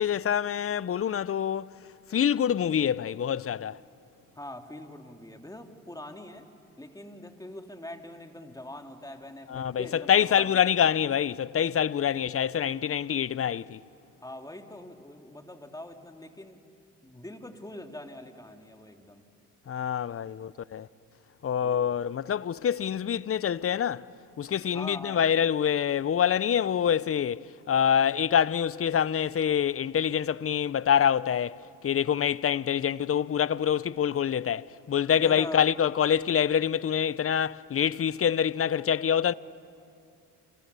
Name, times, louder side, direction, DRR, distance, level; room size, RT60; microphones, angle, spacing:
voice 1, 0.0-1.7 2.1-3.8 9.5-13.8 19.7-20.9 21.4-24.1 24.4-27.4 27.7-31.6 31.8-39.3, left 8 dB, 35° left, 0.7 m, -26 dB
voice 2, 4.3-6.5 6.8-10.6 14.2-16.6 17.0-19.2 21.6-22.0 24.7-25.2 35.1-35.7, left 1 dB, 10° left, 2.8 m, -43 dB
28.5 x 28.5 x 6.9 m
supercardioid pair, 65°, 38 cm